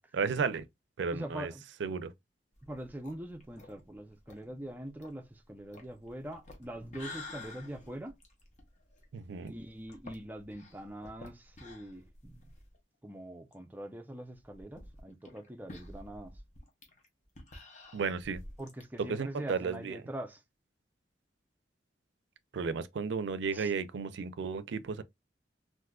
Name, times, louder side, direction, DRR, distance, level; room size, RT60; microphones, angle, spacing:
voice 1, 0.1-0.7 1.0-1.5 1.8-2.1 9.1-9.5 17.9-18.4 19.0-20.0 22.5-25.0, right 5 dB, 90° right, 0.4 m, -33 dB
voice 2, 1.1-1.6 2.6-8.2 9.4-12.5 13.0-16.3 18.6-20.4 23.5-23.7, right 1 dB, 10° right, 0.4 m, -43 dB
sound 1, 2.5-12.8 13.1-13.2 13.5-13.6 14.3-18.8, left 2 dB, 40° left, 0.9 m, -51 dB
3.6 x 2.6 x 2.2 m
head